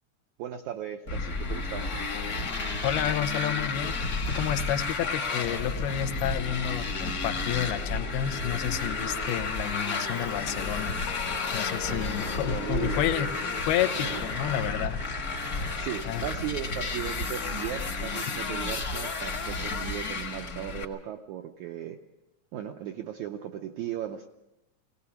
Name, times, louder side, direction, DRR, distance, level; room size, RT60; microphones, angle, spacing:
voice 1, 0.4-2.0 11.8-12.1 12.4-13.4 13.9-14.2 15.8-22.0 22.5-24.3, right 11 dB, 80° right, 4 dB, 1.7 m, -37 dB
Motorcycle, 1.1-20.8, left 3 dB, 45° left, 1.2 m, -32 dB
voice 2, 2.8-4.0 4.3-11.0 11.5-13.3 13.7-15.0 16.0-16.3, left 11 dB, 85° left, 8 dB, 2.9 m, -30 dB
sound 1, 11.1-16.2, left 6 dB, 70° left, 2.6 m, -41 dB
20.5 x 18.0 x 7.1 m, 0.95 s
omnidirectional pair, 4.4 m